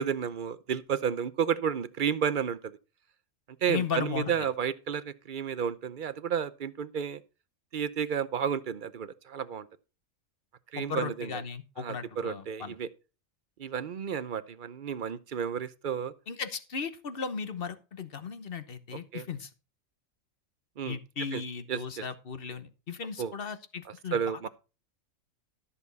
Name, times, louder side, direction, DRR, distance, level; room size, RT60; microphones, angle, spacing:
voice 1, 0.0-2.8 3.6-7.2 7.7-9.7 10.7-11.4 11.8-12.9 13.6-16.1 19.1-19.2 20.8-21.0 21.3-21.4 21.7-22.0 23.2-23.3 23.9-24.5, right 7 dB, 45° right, 0.7 m, -32 dB
voice 2, 3.7-4.3 10.8-12.7 16.3-19.5 20.9-24.5, left 6 dB, 50° left, 1.2 m, -36 dB
13.0 x 7.0 x 4.0 m
omnidirectional pair, 1.3 m